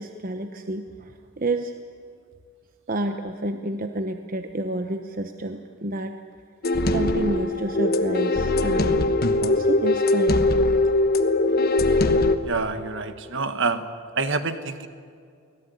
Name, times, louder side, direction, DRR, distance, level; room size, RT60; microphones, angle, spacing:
voice 1, 0.0-1.7 2.9-6.2 6.9-9.1 9.4-10.5, right 1 dB, 40° right, 6 dB, 1.0 m, -29 dB
sound 1, 6.6-12.4, left 2 dB, 45° left, 1.2 m, -21 dB
voice 2, 12.4-13.8 14.2-14.9, right 4 dB, 55° right, 9 dB, 1.5 m, -27 dB
24.5 x 18.0 x 9.3 m, 2.3 s
head